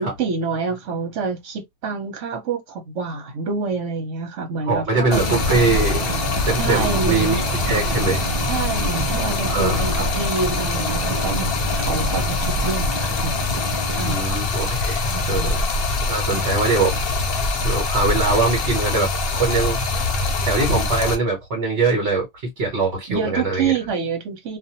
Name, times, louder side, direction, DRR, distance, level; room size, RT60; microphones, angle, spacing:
voice 1, 0.0-5.2 6.6-7.4 8.5-13.5 13.9-14.2 15.1-15.7 16.3-16.4 23.1-24.6, right 5 dB, 80° right, 1.1 m, -27 dB
voice 2, 4.6-6.1 6.5-8.2 9.5-10.0 11.9-12.0 14.0-15.6 16.1-17.0 17.6-19.8 20.5-23.7, right 3 dB, 60° right, 1.2 m, -22 dB
Stream, 5.1-21.1, left 3 dB, 60° left, 0.8 m, -23 dB
Drum, 5.2-14.2, right 3 dB, 35° right, 0.5 m, -30 dB
2.5 x 2.2 x 2.7 m
omnidirectional pair, 1.3 m